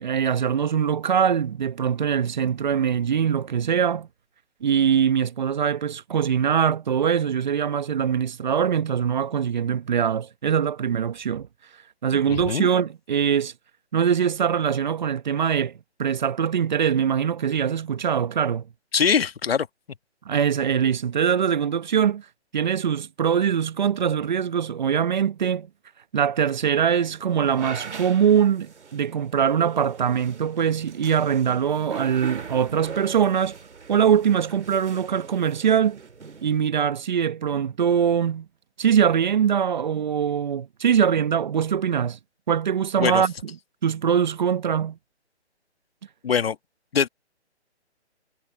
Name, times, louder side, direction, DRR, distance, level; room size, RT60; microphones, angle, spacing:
voice 1, 0.0-4.1 4.6-11.5 12.0-13.5 13.9-18.6 20.2-22.2 22.5-25.7 26.1-33.6 33.9-36.0 36.4-38.5 38.8-42.2 42.5-43.3 43.8-45.0, right 8 dB, 40° right, 1.0 m, -22 dB
voice 2, 12.3-12.7 18.9-19.7 43.0-43.2 46.2-46.6 46.9-47.1, left 7 dB, 60° left, 1.3 m, -22 dB
sound 1, 26.7-36.6, right 5 dB, 80° right, 2.4 m, -41 dB
hypercardioid pair, 155°, 34 cm